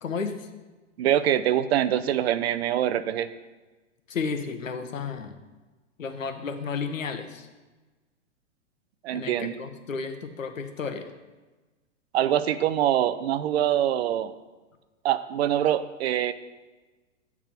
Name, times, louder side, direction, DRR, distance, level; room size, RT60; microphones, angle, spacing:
voice 1, 0.0-0.5 4.1-5.4 6.0-7.5 9.1-11.1, left 5 dB, 85° left, 7 dB, 1.0 m, -32 dB
voice 2, 1.0-3.3 9.0-9.5 12.1-14.3 15.0-16.3, right 11 dB, 55° right, 13 dB, 0.5 m, -24 dB
8.7 x 3.6 x 5.9 m, 1.2 s
hypercardioid pair, 115°, 38 cm